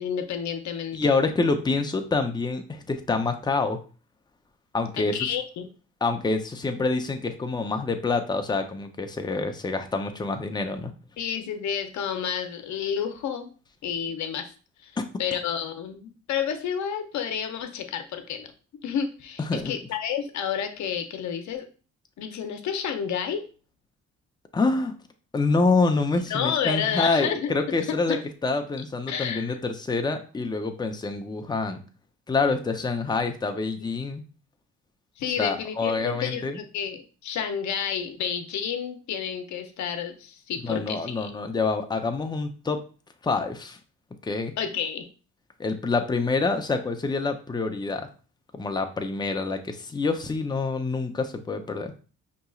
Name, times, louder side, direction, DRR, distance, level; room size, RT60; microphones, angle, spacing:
voice 1, 0.0-1.1 5.0-5.7 11.2-13.5 13.8-14.5 14.8-14.9 15.2-18.5 18.8-21.7 22.2-23.4 26.3-28.2 29.1-29.6 35.2-41.3 44.6-45.1, left 8 dB, 70° left, 7 dB, 0.7 m, -30 dB
voice 2, 0.9-3.8 4.7-5.2 6.0-10.9 15.0-15.1 19.5-19.8 24.5-24.9 25.3-28.2 28.4-31.8 32.3-34.2 35.4-36.6 40.6-42.8 43.2-43.8 44.2-44.5 45.6-48.1 48.5-51.9, left 3 dB, 15° left, 6 dB, 0.5 m, -26 dB
5.2 x 2.9 x 2.3 m, 0.37 s
cardioid pair, 90°, 30 cm